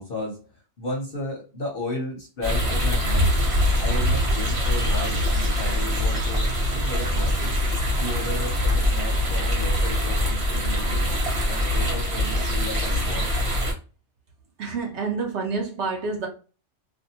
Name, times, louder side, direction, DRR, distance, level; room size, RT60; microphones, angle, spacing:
voice 1, 0.0-3.3 3.8-7.6 8.0-11.1 11.5-13.3, left 1 dB, 55° left, 0.7 m, -34 dB
sound 1, 2.4-13.7, left 1 dB, 30° right, 0.7 m, -23 dB
voice 2, 14.6-16.3, right 4 dB, 65° right, 0.8 m, -28 dB
2.5 x 2.2 x 2.7 m
omnidirectional pair, 1.4 m